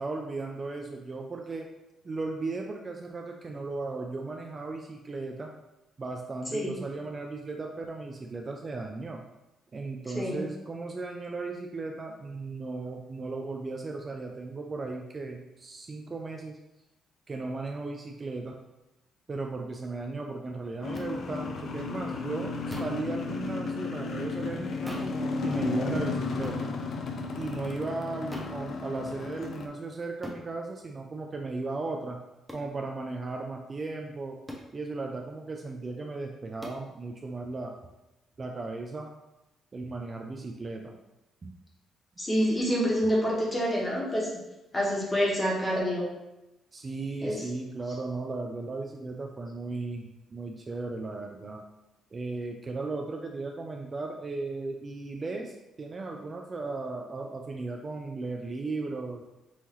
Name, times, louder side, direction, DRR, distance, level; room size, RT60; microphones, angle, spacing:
voice 1, 0.0-1.7 2.0-5.5 6.0-9.2 9.7-16.6 17.3-18.6 19.3-25.1 25.4-26.7 27.4-32.2 32.5-34.4 34.7-37.8 38.4-39.1 39.7-40.9 41.4-41.5 46.7-51.6 52.1-59.2, right 3 dB, 35° right, 2 dB, 0.5 m, -36 dB
voice 2, 10.1-10.4 42.2-44.3 44.7-46.1 47.2-47.3, equal, 20° left, -3 dB, 1.6 m, -27 dB
sound 1, 20.8-29.7, left 3 dB, 60° left, 0.6 m, -33 dB
sound 2, 20.9-21.1 22.7-23.0 24.9-25.2 26.4-26.7 28.3-28.6 30.2-30.5 32.5-32.7 34.5-34.7 36.6-36.9, left 1 dB, ahead, 0.8 m, -40 dB
5.5 x 2.9 x 3.1 m, 0.96 s
cardioid pair, 90°, 0 cm